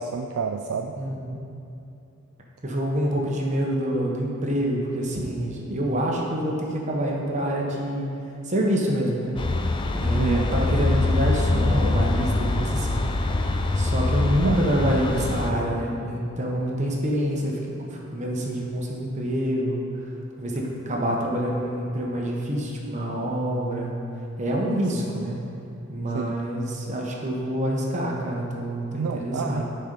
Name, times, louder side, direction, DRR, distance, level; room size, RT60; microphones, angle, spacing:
voice 1, 0.0-0.9 10.1-10.5 14.4-14.6 24.8-25.3 26.1-26.3 29.0-29.6, right 5 dB, 70° right, 4 dB, 0.3 m, -30 dB
voice 2, 1.0-1.4 2.6-8.1 8.4-9.4 9.9-13.0 13.7-19.8 20.4-23.9 24.4-25.4 25.9-29.6, equal, 35° right, -2 dB, 0.9 m, -26 dB
sound 1, 9.4-15.5, left 2 dB, 20° left, 0.4 m, -24 dB
10.0 x 4.4 x 5.2 m, 2.8 s
head